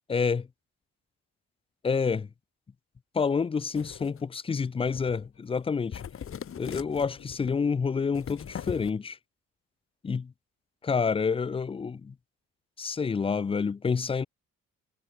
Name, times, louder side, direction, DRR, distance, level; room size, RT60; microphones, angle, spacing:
voice 1, 0.1-0.5 1.8-2.3 3.1-6.0 6.6-9.2 10.0-10.3 10.8-12.1 12.8-14.3, left 5 dB, 20° left, 0.4 m, -28 dB
sound 1, 3.7-4.2 4.9-5.3 5.5-5.7 5.9-7.5 8.1-8.9, left 8 dB, 45° left, 1.4 m, -40 dB
cardioid pair, 90°, 30 cm